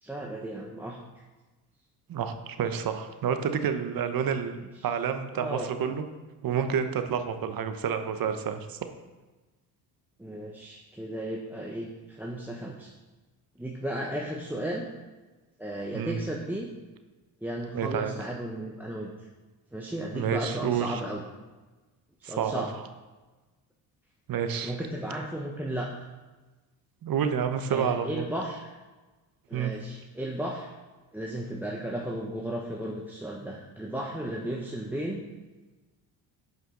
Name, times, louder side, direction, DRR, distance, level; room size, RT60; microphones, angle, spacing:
voice 1, 0.0-1.0 4.8-4.9 5.3-5.7 10.2-12.9 13.6-14.9 15.6-16.7 17.4-19.3 19.7-21.2 22.2-22.7 24.6-25.9 27.7-28.6 29.5-30.7 31.1-35.2, right 1 dB, 5° right, -1 dB, 1.1 m, -34 dB
voice 2, 2.1-4.6 4.8-6.0 6.4-8.8 15.9-16.2 17.7-18.1 20.1-21.0 22.2-22.6 24.3-24.7 27.0-28.3 29.5-29.7, right 7 dB, 50° right, 8 dB, 1.0 m, -29 dB
11.0 x 5.4 x 3.9 m, 1.2 s
supercardioid pair, 65°, 44 cm